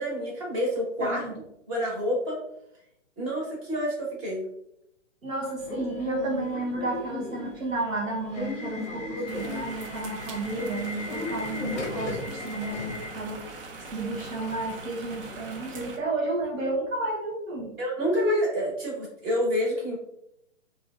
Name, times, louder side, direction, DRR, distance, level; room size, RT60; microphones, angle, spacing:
voice 1, 0.0-1.2 1.7-2.4 3.2-4.5 17.8-20.0, equal, 25° right, -3 dB, 1.2 m, -28 dB
voice 2, 1.0-1.3 5.2-13.7 13.9-17.7, right 2 dB, 85° right, -3 dB, 1.0 m, -32 dB
Subway metro underground / Alarm, 5.6-15.4, left 2 dB, 30° left, 0.6 m, -37 dB
sound 1, 9.3-16.0, right 3 dB, 45° right, 0.5 m, -42 dB
3.4 x 2.6 x 2.4 m, 0.78 s
figure-of-eight pair, 135°, 39 cm